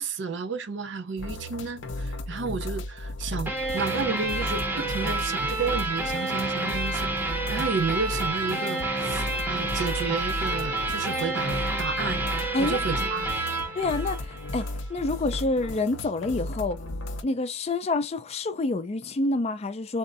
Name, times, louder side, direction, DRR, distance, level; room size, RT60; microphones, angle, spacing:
voice 1, 0.0-7.1 7.5-12.2 12.6-13.4, right 5 dB, 75° right, 0.5 m, -32 dB
chill music, 1.2-17.2, left 1 dB, 90° left, 0.6 m, -35 dB
sound 1, 3.5-14.7, right 2 dB, 10° right, 0.7 m, -29 dB
voice 2, 13.7-16.8 17.2-20.0, left 2 dB, 35° left, 0.4 m, -28 dB
3.5 x 2.0 x 2.5 m
head